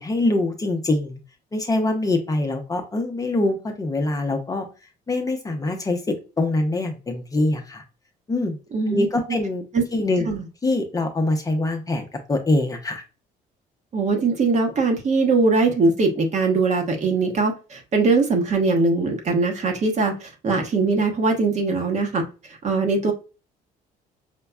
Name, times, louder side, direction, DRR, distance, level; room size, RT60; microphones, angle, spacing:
voice 1, 0.0-1.2 1.5-4.7 5.1-7.8 8.3-8.6 8.9-9.6 9.9-10.3 10.6-13.0, left 2 dB, 20° left, 3 dB, 0.7 m, -24 dB
voice 2, 8.7-9.4 9.7-9.8 10.2-10.4 13.9-22.2 22.6-23.1, right 3 dB, 45° right, 4 dB, 1.0 m, -21 dB
5.2 x 2.2 x 2.2 m, 0.31 s
cardioid pair, 110°, 17 cm